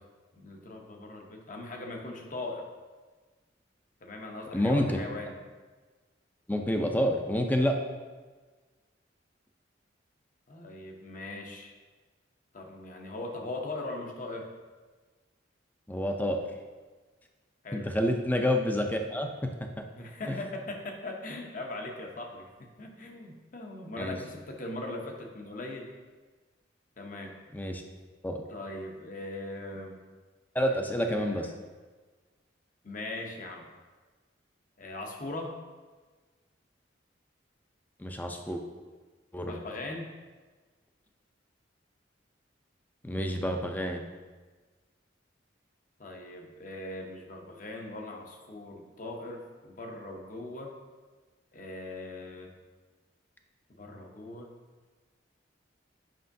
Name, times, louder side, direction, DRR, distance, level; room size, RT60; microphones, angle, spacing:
voice 1, 0.3-2.6 4.0-5.3 10.5-11.7 12.5-14.5 17.6-17.9 19.9-25.9 27.0-27.3 28.5-30.0 30.7-31.5 32.8-33.6 34.8-35.6 39.4-40.1 46.0-50.7 51.5-52.5 53.7-54.5, left 2 dB, 45° left, 2 dB, 0.8 m, -40 dB
voice 2, 4.5-5.0 6.5-7.8 15.9-16.4 17.7-19.8 20.3-20.4 24.0-24.2 27.5-27.8 28.2-28.4 30.5-31.5 38.0-38.6 39.3-39.5 43.0-44.0, equal, 10° left, 4 dB, 0.4 m, -28 dB
7.6 x 5.5 x 2.6 m, 1.4 s
head